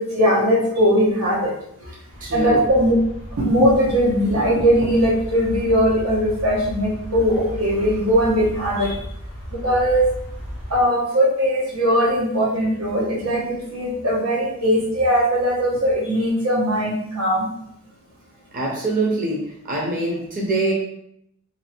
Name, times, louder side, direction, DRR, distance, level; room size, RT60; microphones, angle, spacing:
voice 1, 0.0-1.5 1.8-1.9 2.3-2.9 3.3-8.9 9.5-10.0 10.7-17.5, equal, 85° right, -3 dB, 1.2 m, -19 dB
sound 1, 2.1-10.8, equal, 65° right, 1.4 m, -35 dB
voice 2, 2.2-2.6 18.5-20.7, right 2 dB, 40° right, -2 dB, 0.7 m, -24 dB
2.9 x 2.8 x 4.3 m, 0.72 s
head